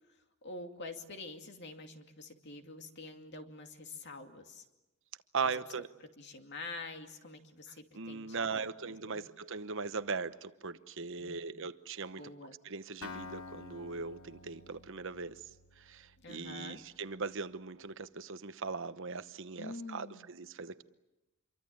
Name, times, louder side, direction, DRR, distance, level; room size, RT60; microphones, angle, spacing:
voice 1, 0.4-4.6 5.4-5.6 6.2-9.3 11.2-11.6 12.2-12.6 16.2-16.8 19.6-20.3, left 3 dB, 55° left, 5 dB, 2.5 m, -47 dB
voice 2, 5.3-5.9 7.9-12.3 12.6-15.4 15.8-20.8, right 5 dB, 60° right, 12 dB, 1.0 m, -39 dB
Acoustic guitar, 13.0-16.9, left 3 dB, 85° left, 1.4 m, -50 dB
26.5 x 23.5 x 8.6 m, 1.0 s
head